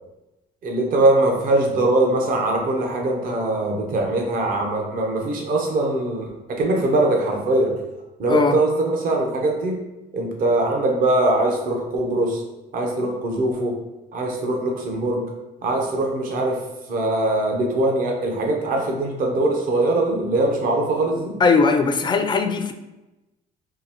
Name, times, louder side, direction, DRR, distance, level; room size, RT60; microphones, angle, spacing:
voice 1, 0.6-7.7 8.2-9.7 10.1-12.4 12.7-13.8 14.1-15.2 15.6-16.6 16.9-21.3, right 2 dB, 55° right, 1 dB, 0.8 m, -22 dB
voice 2, 21.4-22.7, left 4 dB, 25° left, 7 dB, 0.3 m, -19 dB
3.8 x 2.6 x 2.9 m, 1.0 s
cardioid pair, 110°, 17 cm